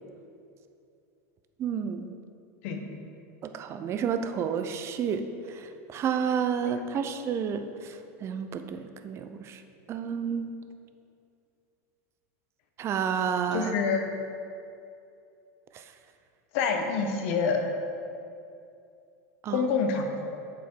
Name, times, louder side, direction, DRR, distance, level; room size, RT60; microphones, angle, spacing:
voice 1, 1.6-2.2 3.4-9.6 9.9-10.5 12.8-13.7 15.7-15.8 19.4-19.7, right 7 dB, 30° right, 8 dB, 0.6 m, -31 dB
voice 2, 13.5-14.0 16.5-17.6 19.5-20.0, left 5 dB, 60° left, 4 dB, 1.1 m, -26 dB
7.2 x 7.2 x 4.6 m, 2.6 s
supercardioid pair, 125°, 8 cm